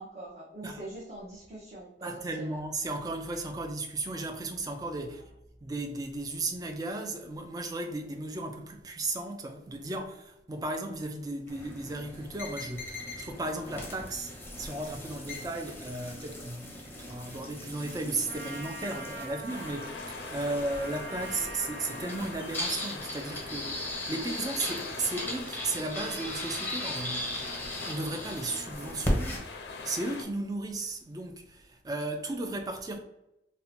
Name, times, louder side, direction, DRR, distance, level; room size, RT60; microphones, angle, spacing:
voice 1, 0.0-2.6 5.1-5.2, right 2 dB, 40° right, 0.8 m, -44 dB
voice 2, 2.0-5.2 5.6-14.3 14.6-27.5 27.8-29.5 29.8-33.0, right 2 dB, 20° right, 0.4 m, -35 dB
sound 1, 11.5-29.4, left 1 dB, 10° left, 0.7 m, -38 dB
Trumpet, 18.3-22.6, right 1 dB, 75° right, 0.5 m, -44 dB
sound 2, 19.5-30.2, left 3 dB, 75° left, 0.5 m, -43 dB
2.7 x 2.1 x 4.1 m
head